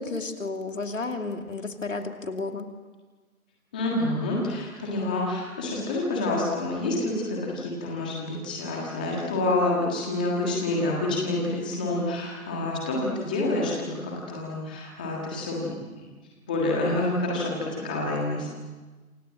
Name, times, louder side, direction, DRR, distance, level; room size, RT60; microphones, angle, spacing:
voice 1, 0.0-2.7, left 3 dB, 60° left, 5 dB, 2.8 m, -32 dB
voice 2, 3.7-16.0 16.5-18.5, left 2 dB, 5° left, -3 dB, 1.6 m, -28 dB
27.5 x 26.5 x 7.5 m, 1.3 s
figure-of-eight pair, 170°, 44 cm